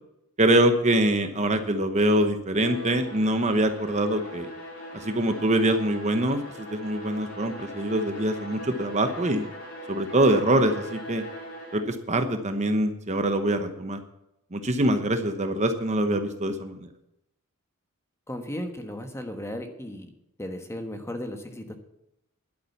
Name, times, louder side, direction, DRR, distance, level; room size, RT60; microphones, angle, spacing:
voice 1, 0.4-4.5 4.9-9.5 9.9-11.2 11.7-14.0 14.5-16.9, right 1 dB, 30° right, 7 dB, 1.0 m, -24 dB
Bowed string instrument, 2.5-12.0, left 1 dB, 65° left, 5.0 m, -40 dB
voice 2, 18.3-20.1 20.4-21.7, left 1 dB, 10° left, 6 dB, 1.3 m, -35 dB
11.5 x 8.7 x 7.1 m, 0.83 s
head